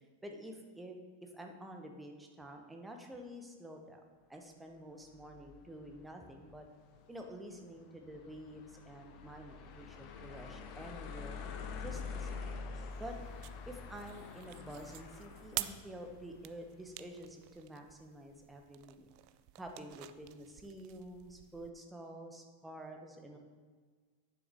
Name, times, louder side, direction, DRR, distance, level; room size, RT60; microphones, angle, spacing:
voice 1, 0.0-4.0 4.3-6.7 7.1-11.4 11.8-13.2 13.7-19.1 19.5-23.4, right 1 dB, 5° right, 3 dB, 1.1 m, -49 dB
sound 1, 5.0-17.2, left 5 dB, 40° left, 0.8 m, -47 dB
sound 2, 12.9-21.7, right 17 dB, 45° right, 0.3 m, -48 dB
10.0 x 6.0 x 3.6 m, 1.5 s
figure-of-eight pair, 90°, 0 cm